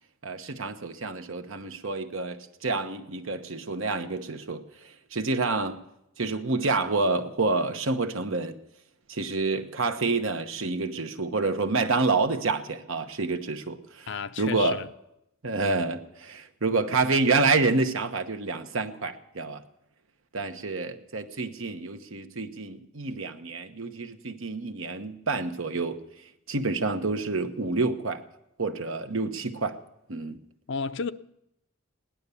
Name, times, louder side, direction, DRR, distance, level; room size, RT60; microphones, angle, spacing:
voice 1, 0.2-5.8 6.2-8.6 9.1-14.1 14.4-14.8 15.4-19.6 20.3-26.0 26.5-28.2 28.6-29.8 30.1-30.4, right 3 dB, 65° right, 1.1 m, -28 dB
voice 2, 14.1-14.9 30.7-31.1, left 5 dB, 55° left, 0.5 m, -32 dB
17.5 x 11.5 x 6.9 m
head